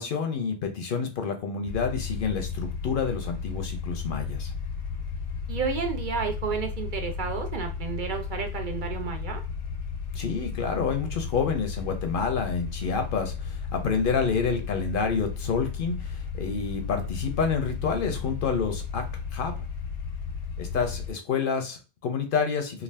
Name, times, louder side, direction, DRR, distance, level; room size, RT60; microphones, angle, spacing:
voice 1, 0.0-4.5 10.1-19.0 19.3-19.6 20.6-22.8, left 5 dB, 60° left, 5 dB, 0.7 m, -28 dB
sound 1, 1.6-21.1, left 5 dB, 85° left, 0.9 m, -34 dB
voice 2, 5.5-9.4, right 6 dB, 60° right, 5 dB, 0.6 m, -31 dB
2.5 x 2.3 x 3.2 m, 0.32 s
omnidirectional pair, 1.1 m